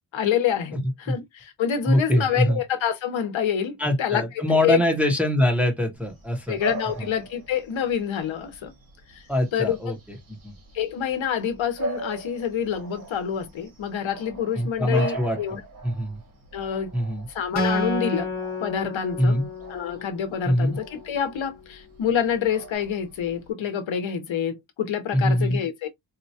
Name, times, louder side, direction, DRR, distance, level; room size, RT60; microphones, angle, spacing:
voice 1, 0.1-4.8 6.5-8.7 9.1-9.2 9.5-10.0 10.7-15.6 16.5-16.9 17.3-18.3 18.6-19.3 19.7-25.9, left 8 dB, 70° left, 0.8 m, -27 dB
voice 2, 0.7-1.2 1.8-2.6 3.8-6.6 7.0-7.1 9.3-10.5 14.6-15.4 15.8-16.2 16.9-17.3 19.2-19.4 20.4-20.8 25.1-25.6, left 1 dB, 5° right, 0.6 m, -23 dB
Bark / Bird vocalization bird call bird song, 6.0-23.5, right 2 dB, 45° right, 1.2 m, -40 dB
Acoustic guitar, 17.6-21.0, left 2 dB, 35° left, 0.9 m, -30 dB
4.2 x 2.2 x 2.7 m
wide cardioid pair, 170°, 48 cm